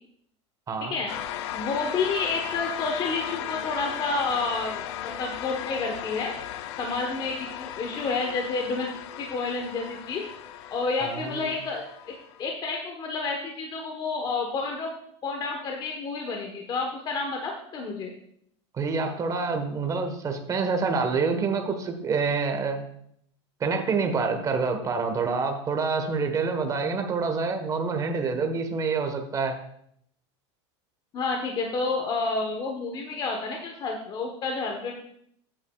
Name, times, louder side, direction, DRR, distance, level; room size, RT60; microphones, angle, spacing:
voice 1, 0.8-1.1 1.5-6.3 6.8-8.9 9.2-10.2 10.7-14.9 15.2-18.1 31.1-34.9, left 4 dB, 30° left, 2 dB, 1.2 m, -30 dB
sound 1, 1.1-12.5, left 11 dB, 70° left, 0.7 m, -36 dB
voice 2, 11.0-11.6 18.7-22.8 23.6-29.6, right 4 dB, 20° right, 5 dB, 1.3 m, -27 dB
13.5 x 9.0 x 2.4 m, 0.70 s
supercardioid pair, 135°, 15 cm